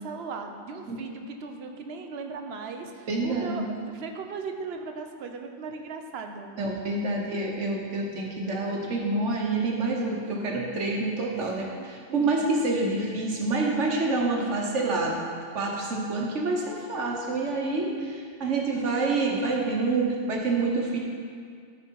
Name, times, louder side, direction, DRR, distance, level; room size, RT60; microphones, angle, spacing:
voice 1, 0.0-6.5 12.1-12.5, right 4 dB, 65° right, 4 dB, 1.0 m, -38 dB
voice 2, 3.1-3.6 6.6-15.2 15.5-21.0, right 3 dB, 85° right, -1 dB, 1.6 m, -27 dB
12.5 x 5.0 x 4.6 m, 2.2 s
omnidirectional pair, 1.2 m